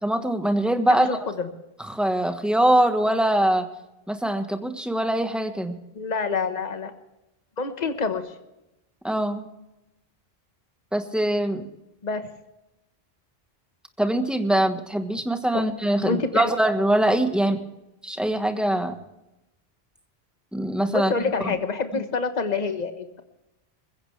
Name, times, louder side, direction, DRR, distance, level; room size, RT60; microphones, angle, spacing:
voice 1, 0.0-1.1 1.9-3.7 4.1-5.8 9.0-9.5 10.9-11.7 14.0-17.6 18.0-19.0 20.5-21.1 21.4-21.6, right 1 dB, ahead, 7 dB, 1.3 m, -23 dB
voice 2, 0.9-1.5 5.9-6.9 7.6-8.3 12.0-12.3 15.5-15.6 16.0-16.5 20.9-23.2, left 4 dB, 45° left, 8 dB, 1.3 m, -27 dB
21.0 x 16.0 x 3.3 m, 0.93 s
omnidirectional pair, 1.0 m